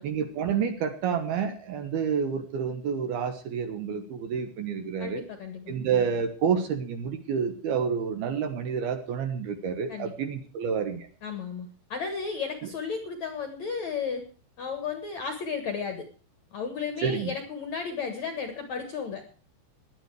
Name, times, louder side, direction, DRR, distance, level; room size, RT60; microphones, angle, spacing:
voice 1, 0.0-5.2 5.7-11.1 17.0-17.3, right 6 dB, 65° right, 8 dB, 2.8 m, -29 dB
voice 2, 5.0-5.7 9.9-10.1 11.2-14.3 14.6-16.0 16.5-19.2, left 5 dB, 55° left, 7 dB, 2.1 m, -34 dB
17.0 x 11.0 x 4.7 m, 0.39 s
omnidirectional pair, 5.4 m